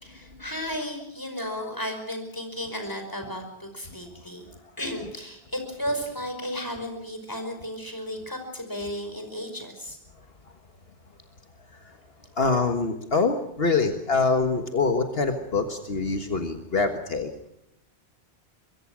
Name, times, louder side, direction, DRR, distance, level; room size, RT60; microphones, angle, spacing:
voice 1, 0.0-4.5 4.8-10.0, equal, 20° left, 5 dB, 5.3 m, -34 dB
voice 2, 3.9-4.6 10.1-10.6 11.7-12.0 12.3-17.3, left 4 dB, 65° left, 6 dB, 1.8 m, -26 dB
24.5 x 22.5 x 6.3 m, 0.80 s
omnidirectional pair, 1.1 m